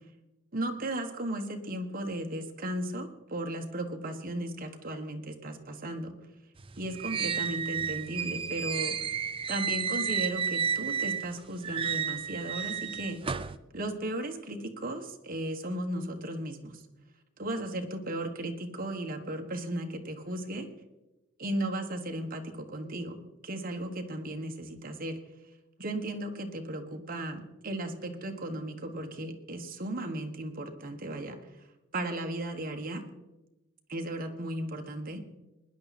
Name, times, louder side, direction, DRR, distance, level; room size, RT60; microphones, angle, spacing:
voice 1, 0.5-6.1 6.8-9.0 9.5-13.2 13.7-16.8 17.4-20.7 21.4-25.2 25.8-31.4 31.9-33.0 33.9-35.2, right 1 dB, 45° right, 5 dB, 1.4 m, -35 dB
sound 1, 6.6-11.3 11.6-13.6, right 7 dB, 25° right, 0.5 m, -32 dB
20.0 x 10.5 x 4.2 m, 1.0 s
head